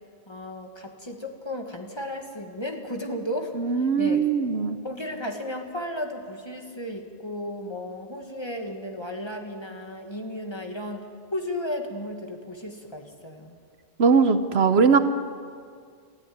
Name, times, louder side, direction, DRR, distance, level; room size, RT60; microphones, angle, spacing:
voice 1, 0.3-4.3 4.8-13.6, left 1 dB, 25° left, 3 dB, 1.8 m, -34 dB
voice 2, 3.6-4.8 14.0-15.0, right 5 dB, 65° right, 10 dB, 1.1 m, -20 dB
20.0 x 14.0 x 9.4 m, 2.1 s
omnidirectional pair, 1.2 m